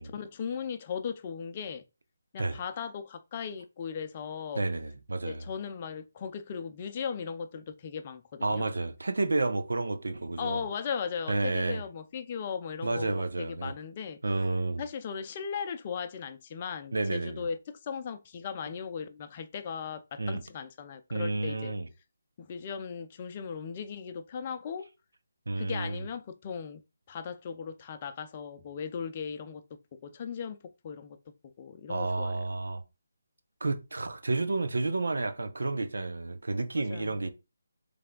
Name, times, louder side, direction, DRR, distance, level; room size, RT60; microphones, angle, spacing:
voice 1, 0.0-1.8 2.3-4.6 5.3-8.7 10.4-14.2 14.8-21.7 22.4-24.9 25.6-26.8 27.1-30.6 30.8-31.2 31.6-32.4 36.9-37.2, left 6 dB, 35° left, 0.5 m, -37 dB
voice 2, 4.6-5.4 8.4-10.7 11.3-11.8 12.8-13.7 14.2-14.8 16.9-17.5 20.2-20.4 21.1-21.9 25.5-26.0 31.9-32.8 33.6-37.3, right 2 dB, 75° right, 0.6 m, -31 dB
3.4 x 3.3 x 3.8 m
figure-of-eight pair, 155°, 0 cm